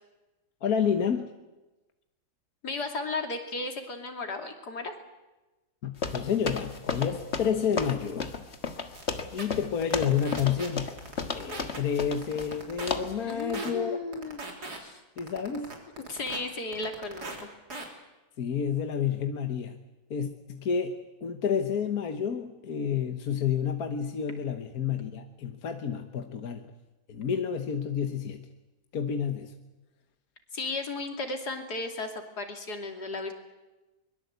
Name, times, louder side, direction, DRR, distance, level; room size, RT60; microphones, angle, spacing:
voice 1, 0.6-1.3 5.8-8.3 9.3-10.9 11.3-14.0 15.2-15.7 18.4-19.8 20.1-20.9 21.2-26.6 27.1-28.4 28.9-29.5, left 7 dB, 70° left, 6 dB, 1.8 m, -29 dB
voice 2, 2.6-4.9 13.2-14.4 14.8-15.0 16.0-17.5 30.5-33.3, left 3 dB, 90° left, 4 dB, 3.4 m, -34 dB
sound 1, 6.0-12.6 12.9-13.2, left 5 dB, 45° left, 1.8 m, -34 dB
sound 2, 8.9-9.0 9.4-9.5 9.8-10.7 11.0-11.8 12.1-12.9 13.3-13.7 14.1-14.8 15.2-16.4 16.7-17.4 17.7-17.9, right 2 dB, 90° right, 4.1 m, -39 dB
23.5 x 22.0 x 8.2 m, 1.1 s
omnidirectional pair, 1.7 m